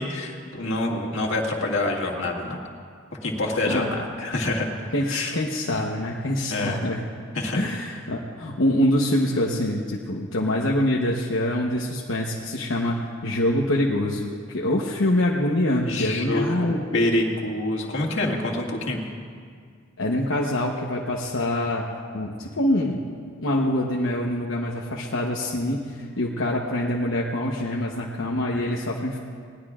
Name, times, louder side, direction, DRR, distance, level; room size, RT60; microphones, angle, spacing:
voice 1, 0.0-2.6 3.2-4.7 5.1-5.3 6.5-6.8 7.3-7.6 15.9-19.0, left 2 dB, 70° left, -2 dB, 2.0 m, -26 dB
voice 2, 4.9-7.0 7.5-13.0 13.2-16.8 20.0-21.8 22.1-23.1 23.4-29.2, left 1 dB, 85° left, -2 dB, 1.0 m, -25 dB
20.5 x 18.0 x 2.5 m, 2.1 s
head